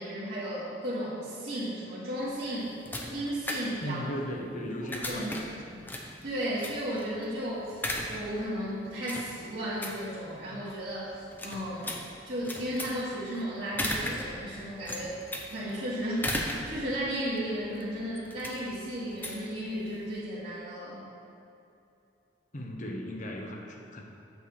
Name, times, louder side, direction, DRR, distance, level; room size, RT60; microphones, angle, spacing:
voice 1, 0.0-2.7 3.1-4.0 4.8-5.3 5.6-5.8 6.2-11.9 12.3-15.2 15.5-21.0, equal, 60° right, -12 dB, 2.0 m, -34 dB
sound 1, 2.2-20.2, left 1 dB, 10° left, 0.7 m, -38 dB
voice 2, 3.8-5.5 22.5-24.0, equal, 45° left, 1 dB, 1.0 m, -36 dB
8.1 x 4.3 x 6.9 m, 2.8 s
head